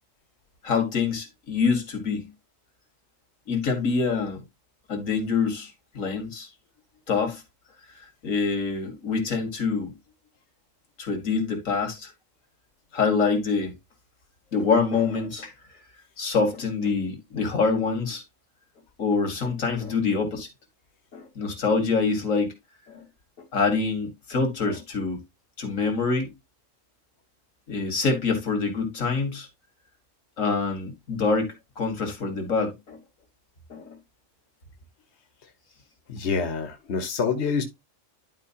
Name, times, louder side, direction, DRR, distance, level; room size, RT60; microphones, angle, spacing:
voice 1, 0.6-2.3 3.5-4.4 4.9-6.5 7.1-7.4 8.0-9.9 11.0-12.1 12.9-13.7 14.5-15.5 16.2-18.2 19.0-20.5 21.1-22.5 22.9-23.1 23.5-25.2 25.6-26.3 27.7-29.5 30.4-33.0 33.7-34.0, left 4 dB, 85° left, 2.3 m, -25 dB
voice 2, 36.1-37.6, left 5 dB, 60° left, 1.4 m, -26 dB
11.0 x 4.5 x 2.8 m
omnidirectional pair, 1.3 m